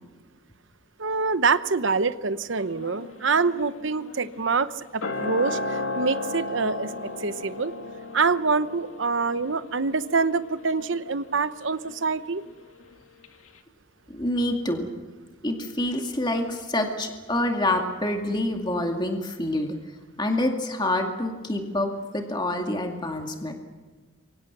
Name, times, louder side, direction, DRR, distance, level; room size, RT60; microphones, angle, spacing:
voice 1, 1.0-7.7 8.1-12.4, right 4 dB, 65° right, 13 dB, 0.9 m, -25 dB
sound 1, 2.6-13.0 13.2-13.3, left 2 dB, 80° left, 2.2 m, -36 dB
voice 2, 14.1-14.9 15.4-19.8 20.2-23.5, left 1 dB, 20° left, 3 dB, 2.3 m, -27 dB
27.5 x 24.5 x 6.1 m, 1.4 s
head